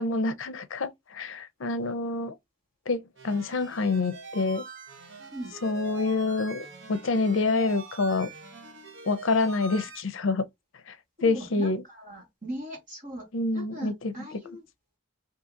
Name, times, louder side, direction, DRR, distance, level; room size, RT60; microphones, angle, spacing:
voice 1, 0.0-2.4 2.9-4.6 5.6-8.3 9.1-10.5 10.9-11.0 11.2-11.8 13.3-14.1, left 3 dB, 70° left, 0.6 m, -27 dB
sound 1, 3.2-10.0, right 3 dB, 60° right, 0.9 m, -44 dB
voice 2, 11.2-13.3 13.5-14.6, equal, 40° right, 1.7 m, -39 dB
2.8 x 2.7 x 3.6 m
head